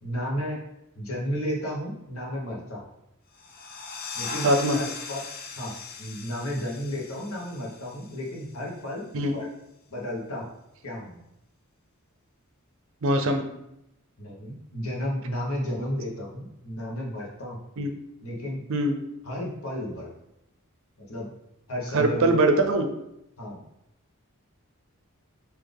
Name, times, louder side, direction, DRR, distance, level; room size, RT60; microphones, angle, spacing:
voice 1, 0.0-0.6 0.9-2.8 4.1-4.5 4.7-5.2 5.6-5.7 6.0-9.5 9.9-10.5 10.8-11.2 14.2-17.7 18.2-18.6 19.2-20.1 21.0-21.3 21.7-22.3 23.4-23.6, equal, 80° left, -3 dB, 1.2 m, -33 dB
sound 1, 3.3-8.7, left 5 dB, 45° left, 0.5 m, -39 dB
voice 2, 4.4-4.8 9.1-9.3 13.0-13.4 17.8-17.9 18.7-19.0 21.9-22.9, right 1 dB, 65° right, 6 dB, 0.5 m, -22 dB
4.0 x 2.8 x 3.4 m, 0.84 s
head